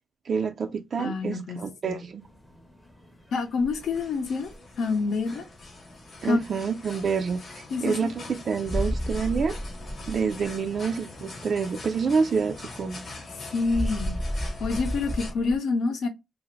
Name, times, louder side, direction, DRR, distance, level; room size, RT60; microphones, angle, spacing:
voice 1, 0.3-2.2 6.2-9.6 10.1-13.0, right 5 dB, 45° right, 0.3 m, -28 dB
voice 2, 1.0-2.0 3.3-5.4 6.2-6.4 7.7-8.1 13.5-14.2 14.6-16.1, left 4 dB, 75° left, 0.7 m, -27 dB
sound 1, 2.2-15.6, equal, 5° left, 0.5 m, -36 dB
sound 2, 3.8-15.3, left 3 dB, 40° left, 0.9 m, -43 dB
2.5 x 2.5 x 3.0 m
wide cardioid pair, 160°, 0 cm